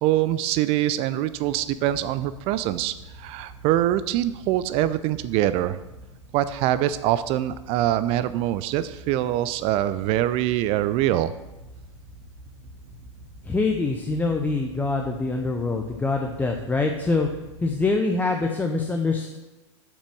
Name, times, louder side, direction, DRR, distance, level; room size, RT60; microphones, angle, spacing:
voice 1, 0.0-5.8 6.3-11.3, right 13 dB, 40° right, 14 dB, 0.4 m, -24 dB
Wind / Boat Water vehicle, 1.3-17.8, right 1 dB, 55° right, 2.5 m, -46 dB
voice 2, 13.4-17.3 17.6-19.4, left 3 dB, 10° left, 2 dB, 0.7 m, -24 dB
8.3 x 6.0 x 6.1 m, 1.1 s
hypercardioid pair, 100°, 16 cm